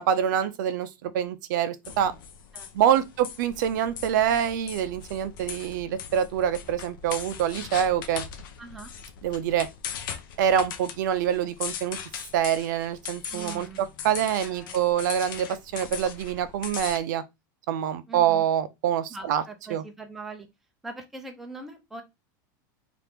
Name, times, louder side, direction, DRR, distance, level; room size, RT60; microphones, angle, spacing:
voice 1, 0.0-2.1 2.7-8.3 9.2-9.7 10.4-12.0 12.3-17.2 17.7-19.4 19.7-19.8, right 9 dB, 65° right, 0.4 m, -25 dB
sound 1, 1.8-17.0, left 8 dB, 80° left, 0.6 m, -39 dB
voice 2, 2.5-3.0 8.6-8.9 13.3-13.9 14.4-14.8 18.1-18.5 19.1-20.5 20.8-22.0, right 3 dB, 5° right, 0.4 m, -42 dB
2.8 x 2.5 x 3.4 m
supercardioid pair, 170°, 11 cm